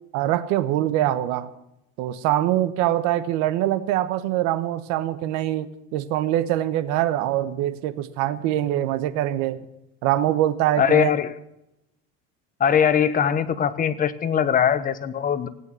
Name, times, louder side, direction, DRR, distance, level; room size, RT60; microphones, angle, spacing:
voice 1, 0.1-1.5 2.0-9.6 10.0-11.1, right 13 dB, 70° right, 12 dB, 1.2 m, -23 dB
voice 2, 10.8-11.4 12.6-15.5, left 8 dB, 30° left, 13 dB, 1.1 m, -21 dB
16.5 x 8.9 x 8.8 m, 0.86 s
cardioid pair, 135°, 29 cm